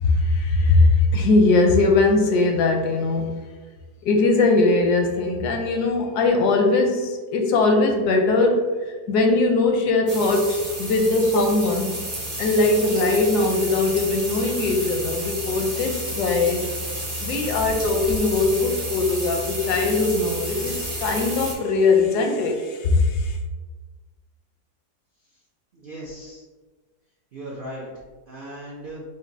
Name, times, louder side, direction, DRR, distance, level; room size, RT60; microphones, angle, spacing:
voice 1, 0.0-3.4 4.0-11.9 12.4-16.7 17.2-23.4, left 3 dB, 80° left, 3 dB, 1.2 m, -20 dB
sound 1, 10.1-21.5, equal, 20° right, 0.5 m, -31 dB
voice 2, 25.7-26.4 27.3-27.9 28.3-29.0, right 1 dB, 85° right, -4 dB, 0.4 m, -37 dB
5.2 x 2.6 x 2.7 m, 1.4 s
omnidirectional pair, 1.7 m